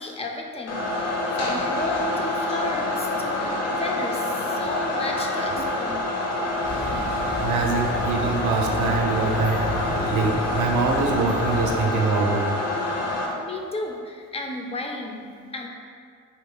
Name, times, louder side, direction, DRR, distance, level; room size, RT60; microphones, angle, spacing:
voice 1, 0.0-6.1 13.4-15.7, left 2 dB, 20° left, 1 dB, 0.3 m, -33 dB
sound 1, 0.7-13.3, left 1 dB, 60° left, 0.7 m, -27 dB
sound 2, 6.6-11.9, left 1 dB, 85° left, 0.9 m, -33 dB
voice 2, 7.0-12.5, right 3 dB, 75° right, 2 dB, 0.5 m, -24 dB
2.8 x 2.4 x 3.6 m, 2.1 s
cardioid pair, 90°, 30 cm